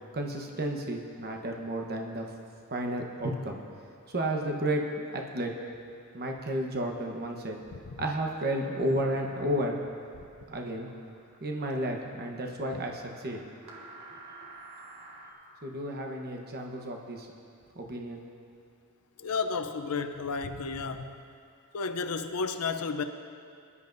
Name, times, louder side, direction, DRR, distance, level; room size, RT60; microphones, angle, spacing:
voice 1, 0.1-2.2 2.7-3.6 4.1-5.5 6.1-7.6 8.0-9.8 10.5-10.9 11.4-13.4 13.7-13.9 15.6-17.3 17.7-18.2, right 1 dB, 45° right, 2 dB, 1.0 m, -32 dB
sound 1, 8.3-15.3, right 2 dB, 65° right, 1.7 m, -51 dB
voice 2, 19.2-21.1 21.7-23.0, left 4 dB, 80° left, 7 dB, 0.6 m, -32 dB
23.0 x 11.0 x 2.6 m, 2.4 s
head